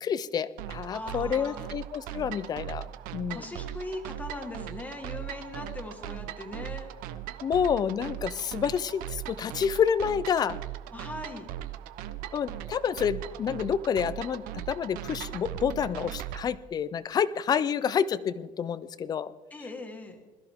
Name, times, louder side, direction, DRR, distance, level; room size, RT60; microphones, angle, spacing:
voice 1, 0.0-3.5 7.4-10.6 12.3-19.3, left 7 dB, 25° left, 16 dB, 0.4 m, -29 dB
sound 1, 0.6-16.4, right 13 dB, 70° right, 0.8 m, -39 dB
voice 2, 0.9-1.7 3.3-6.9 10.9-11.5 19.5-20.2, left 2 dB, 10° left, 4 dB, 1.7 m, -40 dB
21.0 x 13.5 x 3.6 m, 1.2 s
cardioid pair, 170°, 15 cm